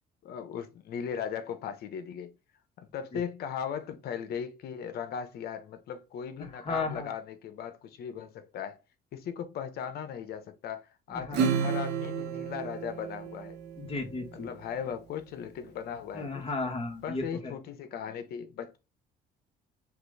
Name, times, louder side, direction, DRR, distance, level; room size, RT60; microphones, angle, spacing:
voice 1, 0.2-2.3 2.8-8.8 9.1-13.6 14.3-16.4 17.0-18.8, left 8 dB, 65° left, 1.0 m, -38 dB
voice 2, 6.6-7.1 11.1-11.4 13.8-14.5 16.1-17.5, left 3 dB, 35° left, 1.8 m, -34 dB
Acoustic guitar / Strum, 11.3-14.2, right 6 dB, 85° right, 1.1 m, -31 dB
5.9 x 2.6 x 3.3 m
cardioid pair, 110°, 17 cm